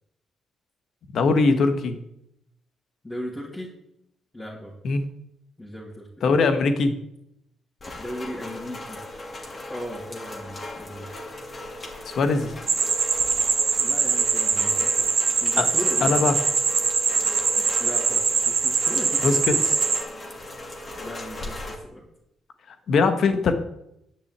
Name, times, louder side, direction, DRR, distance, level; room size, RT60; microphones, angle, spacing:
voice 1, 1.1-2.0 4.8-5.0 6.2-6.9 12.0-12.5 15.6-15.7 16.0-16.3 19.2-19.6 22.7-23.5, left 4 dB, 65° left, 8 dB, 1.6 m, -21 dB
voice 2, 3.0-3.7 4.3-4.7 5.6-6.3 7.9-9.0 9.7-11.1 13.8-15.1 15.4-16.2 17.5-19.6 21.0-22.0, equal, 15° left, -6 dB, 3.0 m, -37 dB
Rain, 7.8-21.8, left 1 dB, 35° left, 2.6 m, -37 dB
sound 1, 12.7-20.0, right 5 dB, 45° right, 1.3 m, -23 dB
10.5 x 6.3 x 8.3 m, 0.80 s
cardioid pair, 90°, 0 cm